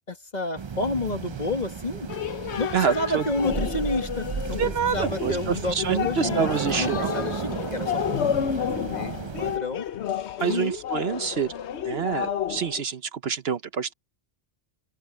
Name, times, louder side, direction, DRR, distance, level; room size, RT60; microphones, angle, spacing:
voice 1, 0.0-2.1 2.6-6.5 6.8-9.9 10.4-10.8, left 2 dB, 35° left, 1.9 m, -30 dB
sound 1, 0.6-9.6, right 5 dB, 40° right, 0.4 m, -33 dB
sound 2, 2.1-12.8, left 9 dB, 70° left, 1.1 m, -31 dB
voice 2, 2.7-3.2 4.6-5.3 5.7-7.1 10.4-11.5 11.8-13.9, right 7 dB, 60° right, 1.0 m, -26 dB
open air
omnidirectional pair, 1.2 m